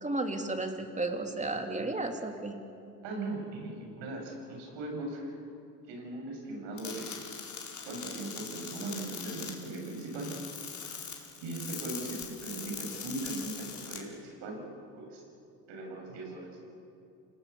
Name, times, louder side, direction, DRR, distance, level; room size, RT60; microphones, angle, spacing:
voice 1, 0.0-2.6, right 2 dB, 15° right, 4 dB, 3.2 m, -33 dB
voice 2, 3.0-5.3 5.9-7.1 7.8-10.3 11.4-14.7 15.0-15.2 15.7-16.6, right 2 dB, 65° right, 2 dB, 7.8 m, -39 dB
sound 1, 6.8-14.0, left 6 dB, 35° left, 5.1 m, -42 dB
29.0 x 19.0 x 7.2 m, 2.6 s
hypercardioid pair, 70°, 46 cm